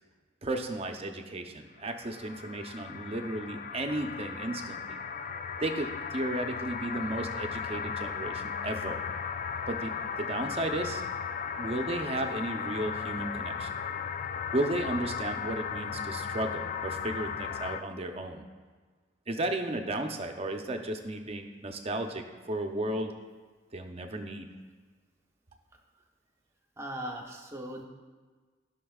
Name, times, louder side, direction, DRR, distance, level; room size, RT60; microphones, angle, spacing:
voice 1, 0.4-5.0 5.6-9.0 9.7-11.0 11.6-13.7 14.5-18.4 19.3-23.1 23.7-24.5, right 1 dB, 35° right, 4 dB, 0.7 m, -34 dB
sound 1, 1.8-17.8, left 6 dB, 45° left, 0.3 m, -36 dB
voice 2, 26.8-27.8, right 1 dB, 15° right, 0 dB, 1.0 m, -38 dB
15.5 x 5.9 x 2.4 m, 1.4 s
head